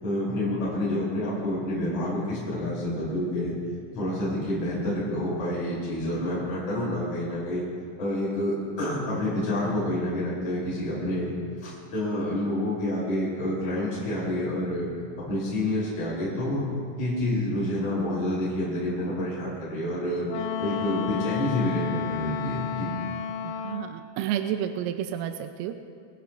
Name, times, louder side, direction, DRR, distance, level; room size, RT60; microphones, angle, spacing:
voice 1, 0.0-3.5 3.9-7.6 8.0-11.3 11.6-14.9 15.2-16.7 17.0-20.3 20.6-22.9, left 1 dB, 35° left, -9 dB, 5.1 m, -28 dB
Wind instrument woodwind instrument, 20.3-24.0, left 7 dB, 90° left, 3.8 m, -32 dB
voice 2, 23.4-25.7, right 10 dB, 85° right, 7 dB, 3.3 m, -31 dB
24.5 x 15.0 x 2.5 m, 2.2 s
omnidirectional pair, 5.9 m